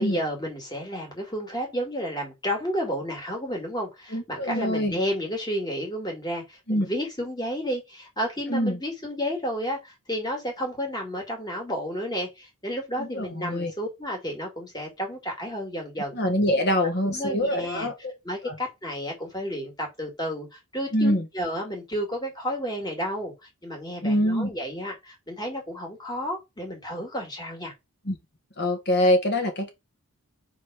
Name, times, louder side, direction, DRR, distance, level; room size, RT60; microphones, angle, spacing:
voice 1, 0.0-16.2 17.0-17.9 18.2-23.3 23.6-27.7, equal, 20° left, 2.3 m, -31 dB
voice 2, 4.1-5.0 6.7-6.9 8.5-8.8 13.0-13.7 16.1-17.9 18.4-18.6 20.9-21.2 24.0-24.5 28.1-28.2 28.6-29.7, equal, 50° left, 1.8 m, -24 dB
5.0 x 4.1 x 4.9 m
head